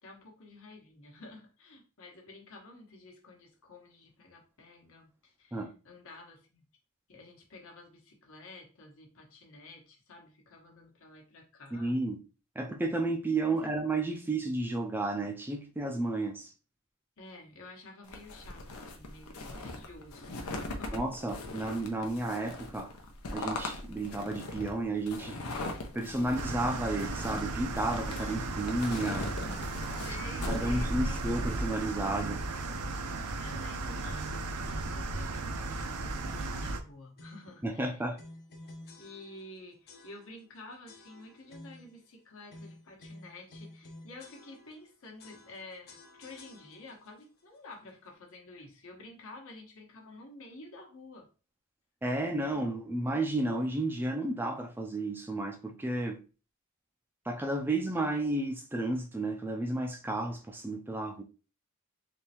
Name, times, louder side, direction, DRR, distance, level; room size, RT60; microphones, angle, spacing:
voice 1, 0.0-6.6 7.1-11.9 13.5-13.7 17.2-21.0 28.1-28.4 30.0-31.5 33.3-38.0 39.0-51.3 52.5-52.7, left 2 dB, 65° left, 1.1 m, -51 dB
voice 2, 11.7-12.2 12.6-16.5 20.9-22.9 23.3-25.4 25.9-29.3 30.5-32.4 37.6-38.2 52.0-56.2 57.3-61.2, right 2 dB, 10° right, 0.3 m, -32 dB
sound 1, 18.1-31.7, left 1 dB, 90° left, 0.8 m, -39 dB
sound 2, 26.3-36.8, right 3 dB, 85° right, 0.6 m, -36 dB
sound 3, 36.2-36.6 37.2-37.5 38.2-39.5 39.9-40.5 40.9-41.9 42.5-44.9 45.2-47.1, left 1 dB, 45° left, 0.7 m, -51 dB
3.5 x 3.2 x 2.9 m
head